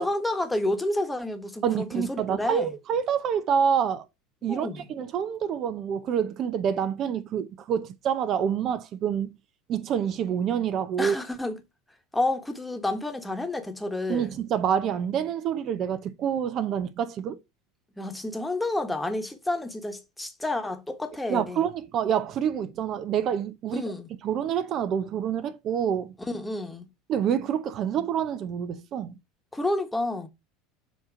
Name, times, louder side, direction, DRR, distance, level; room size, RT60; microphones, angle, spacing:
voice 1, 0.0-2.7 4.5-4.9 11.0-11.6 12.1-14.3 18.0-21.6 23.7-24.1 26.3-26.9 29.5-30.3, left 2 dB, 5° left, 1.2 m, -30 dB
voice 2, 1.6-4.1 4.4-9.3 9.7-11.2 14.1-17.4 21.3-23.8 24.2-26.1 27.1-29.1, right 8 dB, 45° right, 0.6 m, -27 dB
7.2 x 2.9 x 5.0 m
supercardioid pair, 115°, 0 cm